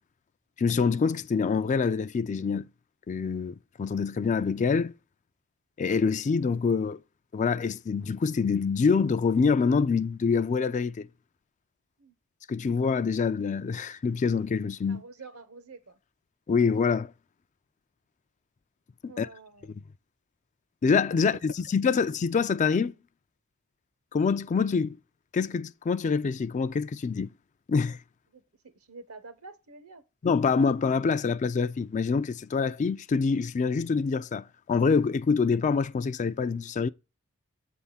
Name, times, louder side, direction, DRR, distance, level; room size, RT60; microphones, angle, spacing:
voice 1, 0.6-2.6 3.1-4.9 5.8-7.0 7.3-11.1 12.5-15.0 16.5-17.1 19.0-19.3 20.8-23.0 24.1-25.0 25.3-27.3 27.7-28.0 30.2-36.9, left 5 dB, 35° left, 0.3 m, -26 dB
voice 2, 14.9-16.0 19.1-19.7 28.3-30.0, right 3 dB, 70° right, 0.9 m, -48 dB
8.0 x 3.5 x 5.5 m
head